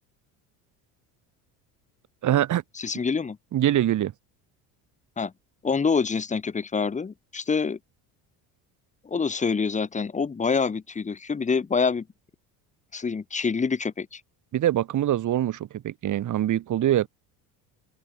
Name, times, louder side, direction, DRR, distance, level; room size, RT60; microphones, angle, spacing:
voice 1, 2.2-2.6 3.5-4.1 14.5-17.1, right 12 dB, 45° right, 1.4 m, -23 dB
voice 2, 2.8-3.4 5.2-5.3 5.6-7.8 9.0-12.1 12.9-14.2, left 5 dB, 20° left, 1.0 m, -26 dB
open air
supercardioid pair, 95°, 40 cm